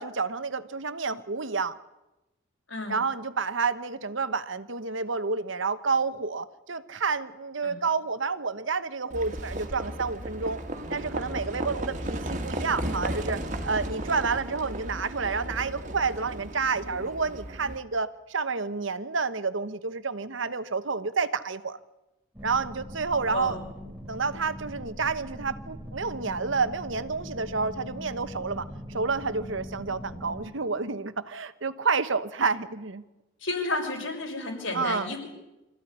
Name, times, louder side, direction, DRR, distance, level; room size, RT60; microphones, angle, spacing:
voice 1, 0.0-1.8 2.9-10.6 10.9-21.8 22.4-23.6 24.1-33.0 34.7-35.1, right 4 dB, 70° right, 13 dB, 1.1 m, -29 dB
Livestock farm animals working animals, 9.1-17.8, right 1 dB, 35° right, 2.0 m, -35 dB
sound 1, 22.3-30.5, equal, 10° right, 3.1 m, -41 dB
voice 2, 23.3-23.6 33.4-35.3, left 2 dB, 75° left, 2 dB, 6.1 m, -32 dB
25.5 x 14.5 x 9.9 m, 1.0 s
head